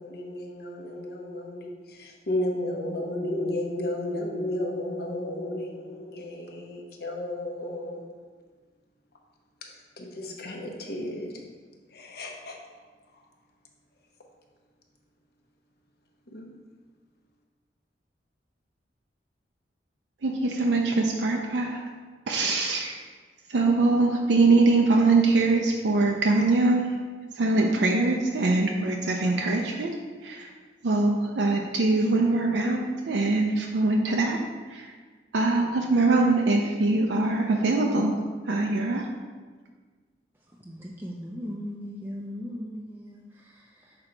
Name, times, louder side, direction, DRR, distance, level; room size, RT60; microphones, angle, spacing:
voice 1, 0.0-8.0 9.6-11.4 11.9-12.6 13.1-13.2 16.3-16.6, left 1 dB, 60° left, 1 dB, 0.9 m, -33 dB
voice 2, 20.2-21.8 22.3-23.0 23.5-26.9 27.3-29.9 30.2-30.5 30.8-34.4 34.7-34.9 35.3-38.1 38.5-39.0, right 3 dB, 75° right, 1 dB, 0.5 m, -23 dB
voice 3, 40.6-44.0, equal, 10° right, -2 dB, 0.4 m, -38 dB
5.9 x 3.8 x 4.5 m, 1.5 s
head